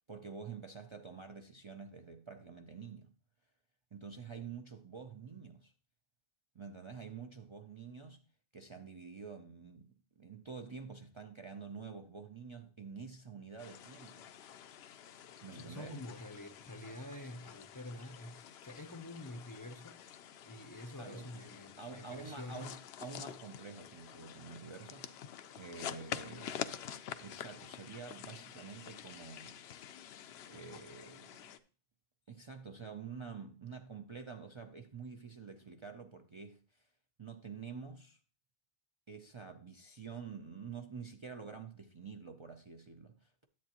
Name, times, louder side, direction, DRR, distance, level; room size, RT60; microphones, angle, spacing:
voice 1, 0.1-3.1 3.9-5.7 6.5-8.2 8.5-14.3 15.4-16.0 21.0-21.5 21.8-25.3 25.5-26.8 27.2-29.6 30.5-31.5 32.3-36.9 37.2-38.2 39.1-43.5, right 5 dB, 40° right, 0.5 m, -48 dB
sound 1, 13.6-31.6, left 9 dB, 80° left, 0.8 m, -48 dB
voice 2, 15.5-20.0 20.4-22.7, left 1 dB, 25° left, 0.5 m, -47 dB
10.5 x 7.9 x 2.9 m
omnidirectional pair, 1.1 m